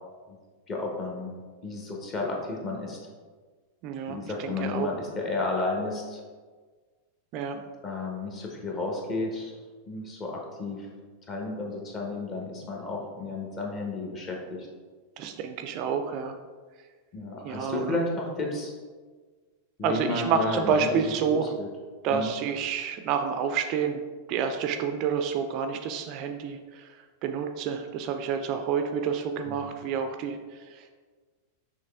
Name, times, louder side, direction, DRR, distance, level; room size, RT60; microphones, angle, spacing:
voice 1, 0.7-1.3 1.6-3.0 4.1-6.2 7.8-9.5 9.9-10.9 11.3-14.7 17.1-18.7 19.8-21.0 21.3-21.7 22.1-22.3 29.4-29.6, left 2 dB, 30° left, 0 dB, 0.9 m, -32 dB
voice 2, 3.8-4.9 7.3-7.6 15.2-16.4 17.4-18.0 19.8-21.5 22.0-24.0 24.3-30.9, right 6 dB, 40° right, 6 dB, 0.3 m, -29 dB
6.2 x 3.1 x 2.4 m, 1.5 s
figure-of-eight pair, 90°, 0 cm